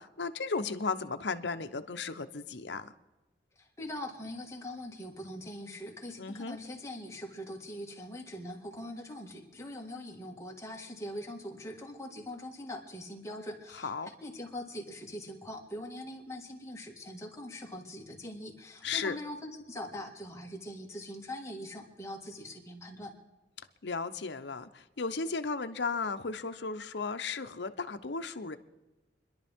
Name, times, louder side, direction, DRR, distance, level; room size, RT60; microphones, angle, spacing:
voice 1, 0.0-2.9 6.2-6.6 13.7-14.1 18.8-19.2 23.8-28.6, left 4 dB, 70° left, 8 dB, 0.8 m, -35 dB
voice 2, 3.6-23.1, left 1 dB, 15° left, -1 dB, 1.8 m, -42 dB
28.5 x 11.5 x 3.6 m, 1.1 s
head